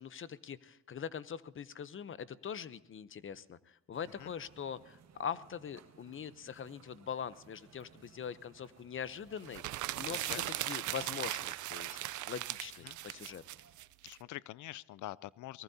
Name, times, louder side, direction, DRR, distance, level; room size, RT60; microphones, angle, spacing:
voice 1, 0.0-9.6 9.9-12.0 12.3-13.4, left 7 dB, 40° left, 16 dB, 0.8 m, -42 dB
sound 1, 3.9-13.9, right 7 dB, 60° right, 1.8 m, -62 dB
sound 2, 9.4-14.1, right 15 dB, 75° right, 0.6 m, -38 dB
voice 2, 10.1-10.5 12.8-13.0 14.0-15.6, left 15 dB, 75° left, 22 dB, 0.5 m, -45 dB
23.5 x 19.0 x 2.8 m, 0.82 s
cardioid pair, 90°, 30 cm